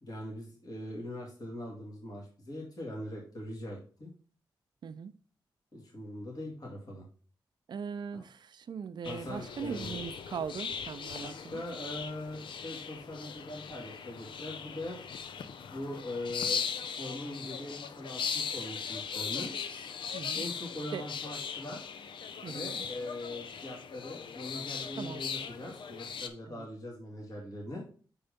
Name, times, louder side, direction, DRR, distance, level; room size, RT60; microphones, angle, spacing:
voice 1, 0.0-4.1 5.7-7.1 8.1-8.2 9.0-10.0 11.2-15.0 15.7-16.6 16.9-19.5 20.3-21.9 22.5-27.9, left 1 dB, 50° left, 2.3 m, -41 dB
voice 2, 4.8-5.1 7.7-11.6 20.1-20.4 20.9-21.1 22.4-22.9 25.0-25.2 26.5-26.7, right 6 dB, 60° right, 0.4 m, -40 dB
sound 1, 9.0-26.3, left 6 dB, 75° left, 0.6 m, -39 dB
5.4 x 4.3 x 5.1 m
cardioid pair, 55°, 8 cm